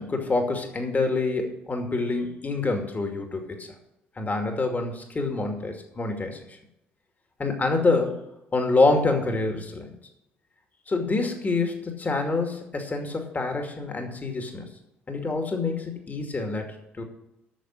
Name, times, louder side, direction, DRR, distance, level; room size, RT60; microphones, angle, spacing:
voice 1, 0.0-3.7 4.2-6.4 7.4-8.2 8.5-9.9 10.9-14.7 15.1-17.0, left 3 dB, 30° left, 4 dB, 2.5 m, -26 dB
9.4 x 6.5 x 8.4 m, 0.87 s
hypercardioid pair, 55°, 6 cm